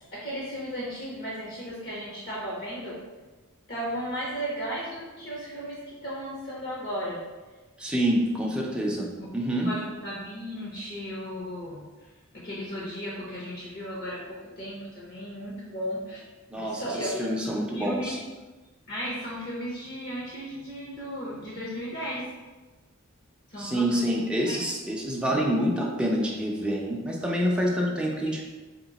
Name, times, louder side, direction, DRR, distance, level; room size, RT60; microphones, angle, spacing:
voice 1, 0.1-3.0 3.7-7.2 9.2-11.8 12.3-16.2 16.6-18.1 18.9-22.2 23.5-24.6, equal, 50° left, -5 dB, 0.9 m, -35 dB
voice 2, 7.8-9.7 16.5-18.2 23.6-28.4, equal, 5° right, -3 dB, 0.5 m, -27 dB
3.0 x 2.9 x 4.0 m, 1.2 s
head